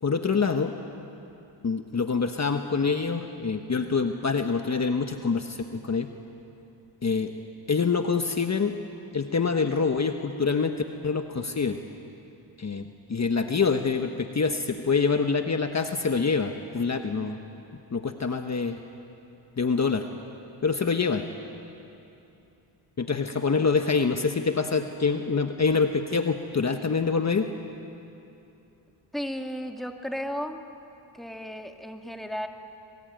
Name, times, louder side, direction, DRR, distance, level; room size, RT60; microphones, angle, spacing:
voice 1, 0.0-0.7 1.6-6.1 7.0-7.3 7.7-8.7 9.1-10.7 11.0-11.8 12.6-17.4 17.9-18.8 19.6-20.0 20.6-21.2 23.0-27.5, left 5 dB, 35° left, 6 dB, 1.2 m, -25 dB
voice 2, 29.1-30.6 31.1-32.5, equal, ahead, 4 dB, 2.0 m, -34 dB
27.0 x 23.0 x 9.2 m, 2.8 s
cardioid pair, 85°, 48 cm